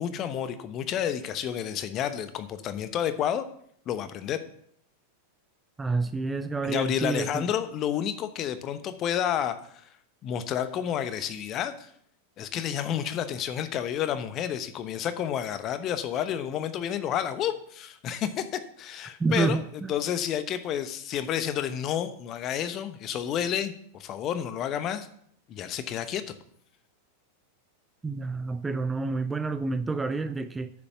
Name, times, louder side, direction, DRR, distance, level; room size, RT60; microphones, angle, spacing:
voice 1, 0.0-3.4 3.9-4.4 6.6-9.9 10.2-11.9 12.4-23.7 24.0-25.1 25.5-26.3, left 9 dB, 35° left, 11 dB, 1.0 m, -30 dB
voice 2, 5.8-7.4 19.2-19.9 28.0-30.7, right 3 dB, 10° right, 11 dB, 0.5 m, -29 dB
9.7 x 7.2 x 6.0 m, 0.66 s
figure-of-eight pair, 90°, 0 cm